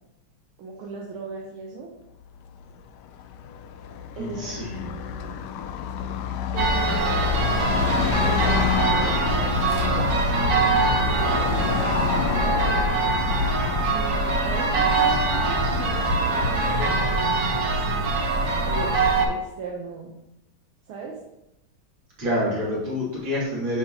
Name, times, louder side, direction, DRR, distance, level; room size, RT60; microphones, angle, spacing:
voice 1, 0.6-1.9 4.2-5.4 6.5-10.2 11.0-12.8 13.9-18.1 18.6-18.9 19.3-20.1 20.9-21.2, right 4 dB, 85° right, -2 dB, 1.9 m, -37 dB
Car passing by / Traffic noise roadway noise, 2.2-16.9, left 8 dB, 75° left, 1.0 m, -29 dB
voice 2, 4.2-4.9 22.2-23.8, left 1 dB, 70° right, -7 dB, 3.5 m, -27 dB
sound 1, 6.6-19.3, right 3 dB, 50° right, 1.5 m, -23 dB
9.2 x 5.9 x 2.9 m, 0.86 s
omnidirectional pair, 2.2 m